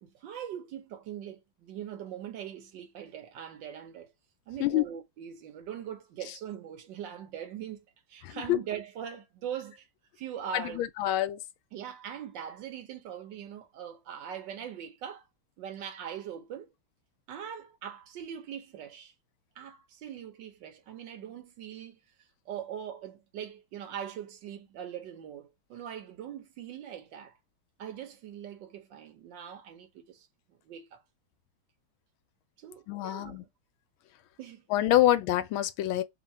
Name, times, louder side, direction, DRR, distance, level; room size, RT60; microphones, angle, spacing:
voice 1, 0.0-4.1 4.5-9.9 10.2-10.8 11.7-15.2 15.6-16.7 17.3-19.1 19.6-22.0 22.5-27.3 27.8-30.3 30.6-31.0 32.6-33.5 34.4-34.6, right 9 dB, 70° right, 1.4 m, -41 dB
voice 2, 8.2-8.6 10.5-11.4 32.9-33.4 34.7-36.0, left 14 dB, 85° left, 1.4 m, -26 dB
3.7 x 2.2 x 4.1 m
omnidirectional pair, 2.2 m